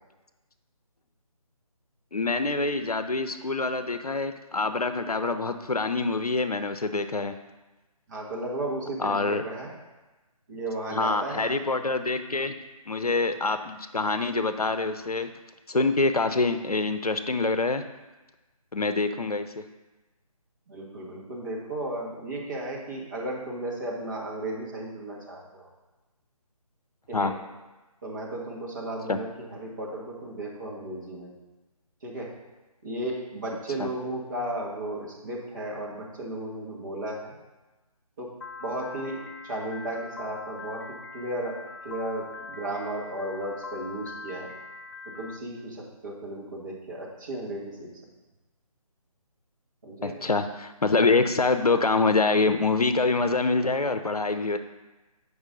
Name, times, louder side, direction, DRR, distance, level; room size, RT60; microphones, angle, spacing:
voice 1, 2.1-7.4 9.0-9.4 10.9-12.6 12.9-15.3 15.7-17.8 18.7-19.5 27.1-27.3 29.1-29.2 33.8-33.9 50.0-54.6, left 3 dB, 80° left, 9 dB, 0.7 m, -25 dB
voice 2, 8.1-9.7 10.5-11.5 20.7-25.7 27.1-27.3 28.0-31.3 32.0-32.3 32.8-37.3 38.2-38.3 38.6-39.2 39.4-40.8 41.1-41.6 41.8-44.5 45.2-47.9 49.8-50.1, right 1 dB, 30° right, -4 dB, 1.6 m, -34 dB
Piano, 38.4-45.4, left 4 dB, 40° left, 0.5 m, -42 dB
8.0 x 5.4 x 4.0 m, 1.1 s
figure-of-eight pair, 155°, 19 cm